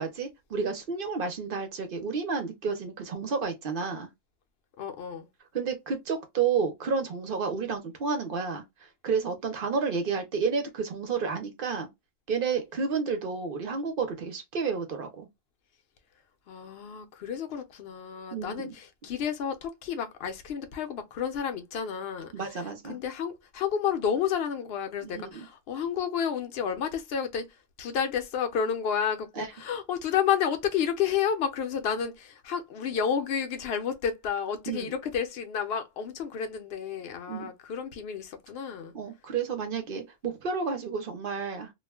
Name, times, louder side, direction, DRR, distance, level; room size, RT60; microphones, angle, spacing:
voice 1, 0.0-4.1 5.5-11.9 12.3-15.3 18.3-18.7 22.3-23.0 25.0-25.3 29.4-29.5 34.7-34.9 37.3-37.5 38.9-41.7, right 5 dB, 50° right, 0.8 m, -31 dB
voice 2, 4.8-5.3 16.5-38.9, left 7 dB, 60° left, 0.8 m, -31 dB
2.4 x 2.2 x 3.2 m
omnidirectional pair, 1.3 m